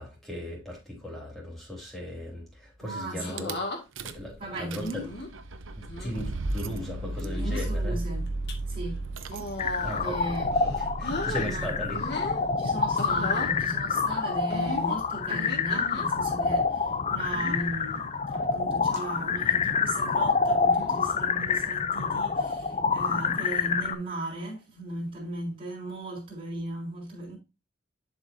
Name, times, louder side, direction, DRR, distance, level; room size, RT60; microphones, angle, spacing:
voice 1, 0.0-3.6 4.0-5.0 5.7-8.0 9.8-10.2 10.6-12.3, left 1 dB, ahead, 3.4 m, -37 dB
voice 2, 2.8-3.5 4.4-5.1 7.4-8.3 8.7-10.5 11.1-11.7 12.6-27.4, right 1 dB, 25° right, 3.6 m, -37 dB
sound 1, 3.2-3.8 4.7-5.3 5.9-6.2 7.1-7.7 8.3-8.5 9.3-10.2 10.5-11.5 11.9-12.4 13.0-13.5 14.5-16.1 17.3-17.7 18.3-18.7 18.9-19.0 20.6-21.0 22.1-22.4, left 1 dB, 55° left, 2.0 m, -36 dB
Rattle / Car / Engine starting, 3.4-3.5 4.0-4.3 4.6-12.3, right 2 dB, 80° right, 0.8 m, -35 dB
sound 2, 9.6-23.9, left 5 dB, 35° left, 0.5 m, -27 dB
11.0 x 5.1 x 2.7 m
head